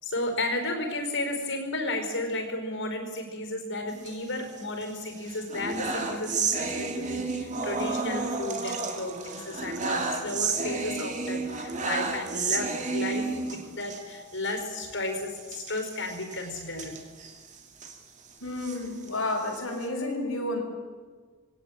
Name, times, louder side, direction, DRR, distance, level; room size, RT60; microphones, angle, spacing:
voice 1, 0.0-16.9, left 2 dB, 65° left, 5 dB, 5.0 m, -33 dB
sound 1, 3.9-4.8 5.2-14.0 14.4-14.5 14.8-14.9 15.4-18.0 18.5-19.9, right 4 dB, 35° right, 2.6 m, -32 dB
voice 2, 18.4-20.6, left 2 dB, 80° left, -1 dB, 5.5 m, -31 dB
22.5 x 17.5 x 9.0 m, 1.5 s
head